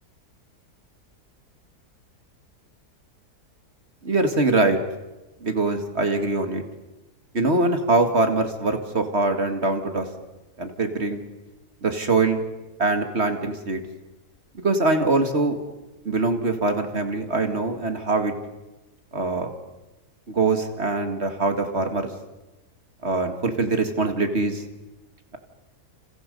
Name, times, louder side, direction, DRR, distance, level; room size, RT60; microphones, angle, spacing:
voice 1, 4.0-4.8 5.4-6.6 7.3-10.1 10.6-11.2 11.8-12.4 12.8-13.8 14.6-15.6 16.0-18.3 19.1-19.5 20.3-22.1 23.0-24.6, right 3 dB, 40° right, 6 dB, 2.3 m, -23 dB
30.0 x 28.5 x 5.4 m, 1.1 s
omnidirectional pair, 1.7 m